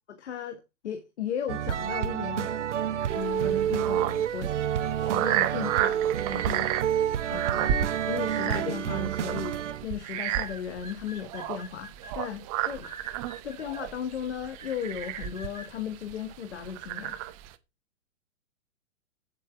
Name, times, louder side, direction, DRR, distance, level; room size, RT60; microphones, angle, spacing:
voice 1, 0.1-2.6 3.1-4.5 4.9-6.0 6.3-6.7 7.3-7.8 8.1-12.9 13.4-17.2, left 8 dB, 55° left, 1.6 m, -36 dB
sound 1, 1.5-9.8, right 10 dB, 60° right, 0.7 m, -29 dB
sound 2, 3.1-17.5, right 12 dB, 25° right, 0.7 m, -33 dB
sound 3, 10.1-12.1 12.8-13.9 14.6-15.7, right 1 dB, 90° right, 1.7 m, -45 dB
8.8 x 7.4 x 4.5 m
figure-of-eight pair, 110°, 40 cm